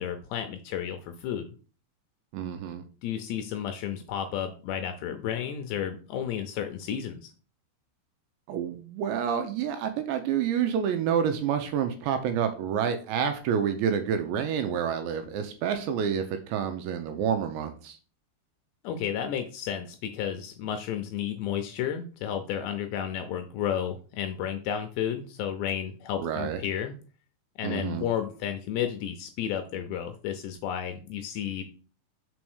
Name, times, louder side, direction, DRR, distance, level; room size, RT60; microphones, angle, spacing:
voice 1, 0.0-1.5 3.0-7.3 18.8-26.9 27.6-31.6, left 9 dB, 80° left, 6 dB, 2.6 m, -32 dB
voice 2, 2.3-2.8 8.5-18.0 26.2-26.6 27.6-28.1, right 8 dB, 80° right, 7 dB, 2.8 m, -28 dB
6.3 x 4.8 x 6.1 m, 0.39 s
omnidirectional pair, 5.6 m